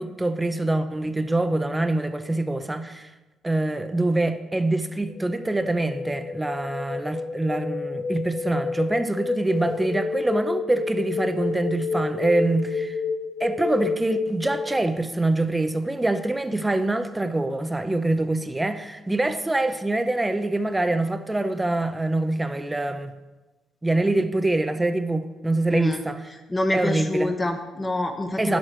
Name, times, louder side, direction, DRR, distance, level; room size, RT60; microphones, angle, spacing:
voice 1, 0.0-3.1 3.4-13.0 13.4-23.1 23.8-26.2 26.7-27.3 28.4-28.6, right 2 dB, 15° right, 9 dB, 0.7 m, -25 dB
sound 1, 5.1-15.0, left 4 dB, 60° left, 0.6 m, -30 dB
voice 2, 25.7-26.0 26.5-28.6, left 1 dB, 20° left, 5 dB, 1.3 m, -26 dB
10.5 x 7.9 x 4.4 m, 1.1 s
cardioid pair, 90°, 0 cm